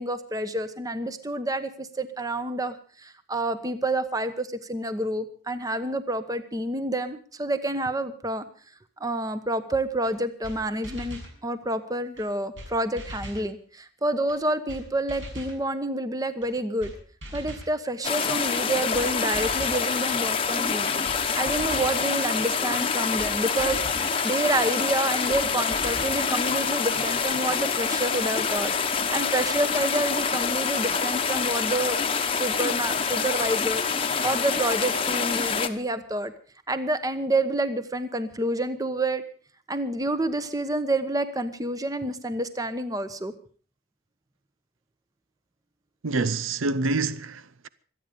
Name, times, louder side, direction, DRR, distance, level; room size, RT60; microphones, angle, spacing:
voice 1, 0.0-8.4 9.0-16.9 17.3-20.9 21.4-23.8 24.2-28.7 29.1-32.0 32.3-36.3 36.7-39.2 39.7-43.3, right 1 dB, 20° right, 1.1 m, -28 dB
sound 1, 10.0-10.1 10.4-10.6 10.8-11.3 12.2-12.3 12.6-12.7 13.0-13.5 14.3-14.4 14.7-14.8 15.1-15.6 16.4-16.5 16.8-16.9 17.2-17.7 18.5-18.6 18.9-19.1 19.3-19.8 20.7-20.8 21.0-21.2 21.5-21.9 22.8-22.9 23.2-23.3 23.6-24.1 24.9-25.0 25.3-25.4 25.7-26.2, equal, 65° right, 6.7 m, -40 dB
sound 2, 18.0-35.7, left 5 dB, 25° left, 1.1 m, -26 dB
voice 2, 46.0-47.7, right 3 dB, 80° right, 0.6 m, -27 dB
25.5 x 9.2 x 5.2 m
head